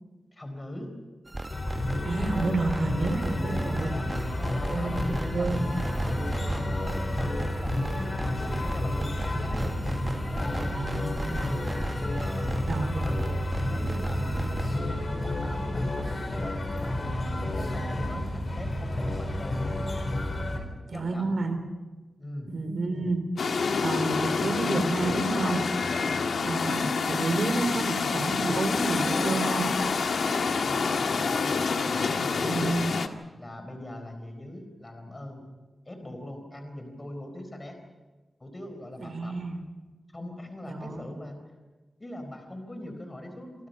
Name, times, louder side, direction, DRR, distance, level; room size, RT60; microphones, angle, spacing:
voice 1, 0.3-0.9 3.8-4.1 4.4-9.8 10.5-10.8 12.2-12.5 12.8-13.2 13.7-19.7 20.5-21.4 22.2-22.5 25.9-26.2 30.3-32.9 33.4-35.4 35.9-37.8 38.4-39.5 40.1-41.4 42.0-43.7, left 1 dB, 20° left, 6 dB, 4.3 m, -41 dB
sound 1, 1.3-14.8, right 1 dB, 20° right, 0.9 m, -37 dB
sound 2, 1.5-20.6, left 1 dB, 35° left, 4.1 m, -30 dB
voice 2, 2.0-3.9 4.7-5.1 5.3-5.7 10.7-11.7 12.7-13.0 20.9-21.6 22.5-25.6 26.5-29.7 32.2-33.0 39.0-39.6 40.7-41.0, right 3 dB, 55° right, 7 dB, 3.6 m, -30 dB
sound 3, 23.4-33.1, left 4 dB, 80° left, 1.5 m, -27 dB
28.5 x 25.0 x 5.6 m, 1.2 s
wide cardioid pair, 165°, 0 cm